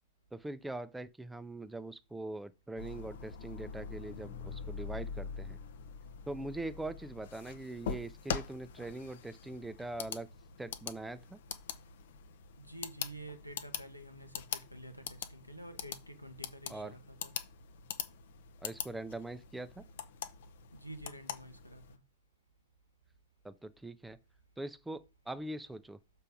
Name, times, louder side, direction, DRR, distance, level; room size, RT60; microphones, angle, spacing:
voice 1, 0.3-5.6 6.3-10.3 10.6-11.4 16.7-17.0 18.6-19.8 23.4-24.2 24.6-26.0, right 2 dB, 5° right, 0.6 m, -42 dB
sound 1, 2.8-22.0, left 7 dB, 60° left, 0.7 m, -44 dB
voice 2, 12.6-17.3 20.7-22.0, right 1 dB, 90° left, 1.1 m, -49 dB
6.8 x 4.6 x 5.2 m
figure-of-eight pair, 90°, 0 cm